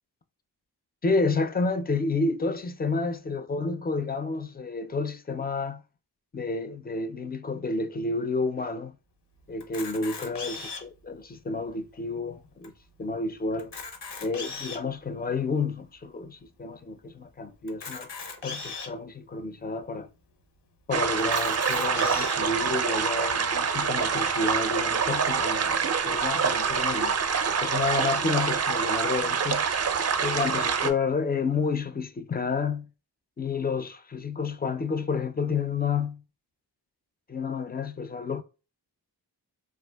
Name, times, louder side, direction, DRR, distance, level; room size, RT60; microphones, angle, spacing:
voice 1, 1.0-5.8 6.3-8.9 9.5-12.7 13.0-13.7 14.2-18.1 18.4-20.1 20.9-27.2 27.6-29.7 30.2-32.9 33.4-36.2 37.3-38.4, left 4 dB, 25° left, 0.4 m, -30 dB
Camera, 9.6-11.0 11.7-11.8 12.0-12.1 12.6-12.7 13.5-14.9 15.6-15.7 17.7-18.9 19.6-19.7 20.0-20.1 21.2-22.4, left 4 dB, 75° left, 0.8 m, -38 dB
sound 1, 20.9-30.9, right 6 dB, 40° right, 0.5 m, -26 dB
3.4 x 2.4 x 2.2 m
cardioid pair, 50°, 41 cm